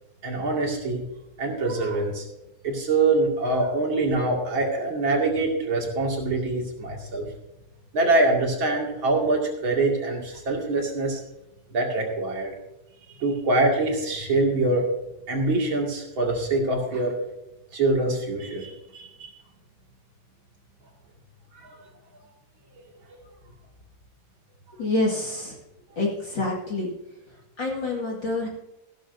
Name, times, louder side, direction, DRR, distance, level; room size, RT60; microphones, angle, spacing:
voice 1, 0.2-1.0 1.4-2.2 2.6-7.3 7.9-11.2 11.7-12.5 13.2-14.9 15.3-17.1 17.7-19.3 21.6-21.8, right 2 dB, 40° right, 0 dB, 2.7 m, -24 dB
voice 2, 24.8-25.6 26.0-26.9 27.6-28.5, left 2 dB, 40° left, -2 dB, 2.3 m, -27 dB
15.5 x 12.5 x 2.7 m, 0.91 s
omnidirectional pair, 3.5 m